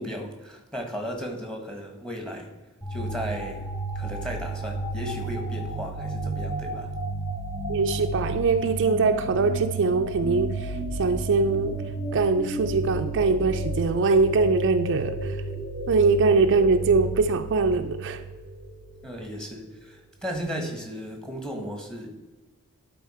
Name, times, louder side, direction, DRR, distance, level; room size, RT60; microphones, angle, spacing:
voice 1, 0.0-2.5 2.8-6.9 19.0-22.1, equal, 5° left, 2 dB, 1.4 m, -35 dB
sound 1, 2.8-19.2, right 2 dB, 30° left, 2.3 m, -32 dB
voice 2, 7.7-11.8 12.1-15.4 15.9-18.2, right 4 dB, 55° right, 7 dB, 0.4 m, -22 dB
11.5 x 4.3 x 4.3 m, 1.2 s
head